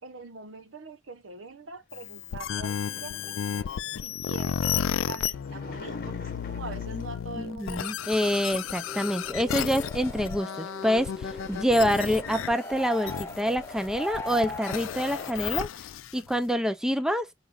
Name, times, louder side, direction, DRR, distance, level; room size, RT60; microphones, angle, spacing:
voice 1, 0.0-3.4 4.0-8.3, right 4 dB, 80° right, 0.9 m, -43 dB
sound 1, 1.9-16.3, left 8 dB, 85° left, 0.4 m, -33 dB
sound 2, 2.1-7.3 7.9-9.9 10.4-10.5 10.7-12.6, left 3 dB, 50° left, 0.8 m, -47 dB
voice 2, 7.3-15.7 16.1-17.3, equal, 5° right, 0.4 m, -27 dB
sound 3, 8.9-15.5, left 2 dB, 15° left, 0.8 m, -40 dB
4.8 x 2.4 x 3.4 m
head